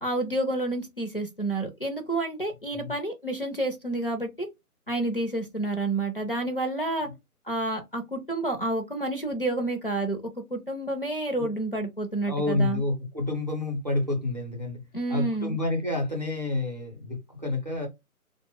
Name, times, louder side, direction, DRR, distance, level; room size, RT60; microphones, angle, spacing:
voice 1, 0.0-4.5 4.9-7.1 7.5-10.2 10.5-12.8 14.9-15.6, right 2 dB, 40° left, 0.5 m, -29 dB
voice 2, 12.2-14.8 15.1-17.9, left 2 dB, 30° right, 0.6 m, -29 dB
2.8 x 2.1 x 3.4 m
figure-of-eight pair, 150°, 45 cm